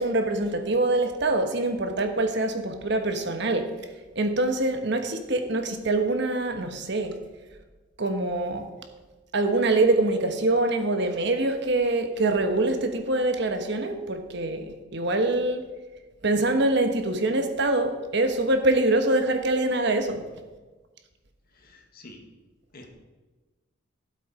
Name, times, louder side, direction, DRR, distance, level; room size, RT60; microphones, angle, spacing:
voice 1, 0.0-3.7 4.1-7.2 8.0-8.7 9.3-15.6 16.2-20.2, right 2 dB, 65° right, 6 dB, 1.3 m, -24 dB
voice 2, 21.5-22.2 22.7-22.9, left 2 dB, 50° left, 3 dB, 1.8 m, -48 dB
13.0 x 8.0 x 4.9 m, 1.2 s
head